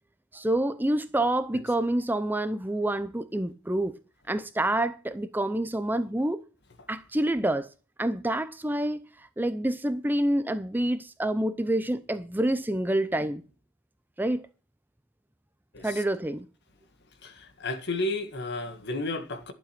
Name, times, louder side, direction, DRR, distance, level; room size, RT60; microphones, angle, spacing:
voice 1, 0.3-4.0 4.3-6.4 6.9-7.7 8.0-13.4 14.2-14.5 15.8-16.5, right 1 dB, 10° right, 0.6 m, -27 dB
voice 2, 17.2-19.5, left 2 dB, 50° left, 1.8 m, -32 dB
12.0 x 7.7 x 5.9 m
head